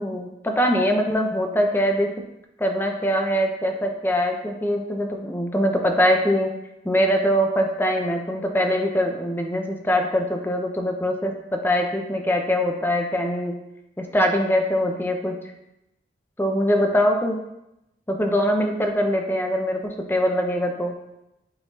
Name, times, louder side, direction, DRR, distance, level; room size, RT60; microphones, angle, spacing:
voice 1, 0.0-2.1 2.6-6.5 6.8-13.6 14.0-15.3 16.4-17.4 18.1-21.0, equal, 10° left, 3 dB, 0.6 m, -22 dB
8.9 x 3.9 x 2.7 m, 0.88 s
head